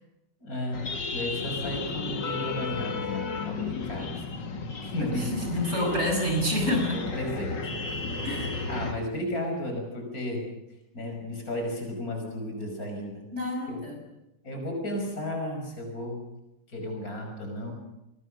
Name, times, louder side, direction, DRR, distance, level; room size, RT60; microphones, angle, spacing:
voice 1, 0.4-4.4 4.8-5.4 5.8-5.9 6.9-7.6 7.9-8.3 8.7-10.4 10.9-13.2 13.7-13.8 14.4-16.2 16.7-17.7, left 1 dB, 50° left, 2 dB, 6.4 m, -34 dB
sound 1, 0.7-8.9, left 4 dB, 75° left, 2.9 m, -33 dB
voice 2, 5.1-7.0 8.2-8.6 13.3-14.0, left 1 dB, 35° right, 3 dB, 6.6 m, -28 dB
27.0 x 21.5 x 6.6 m, 0.89 s
omnidirectional pair, 2.0 m